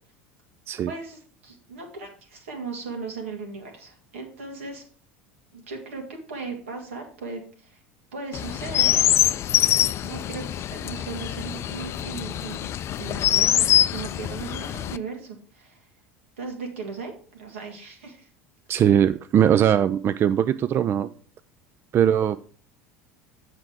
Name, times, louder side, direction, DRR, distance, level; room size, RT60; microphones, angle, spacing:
voice 1, 0.9-4.8 5.5-7.8 8.1-9.2 10.0-15.8 16.4-18.3, right 4 dB, 85° right, 2 dB, 2.2 m, -37 dB
Chirp tweet, 8.3-15.0, left 11 dB, 40° left, 0.4 m, -24 dB
voice 2, 18.7-21.1 21.9-22.4, right 9 dB, 35° right, 13 dB, 0.4 m, -20 dB
7.6 x 6.0 x 4.7 m, 0.42 s
hypercardioid pair, 85°, 7 cm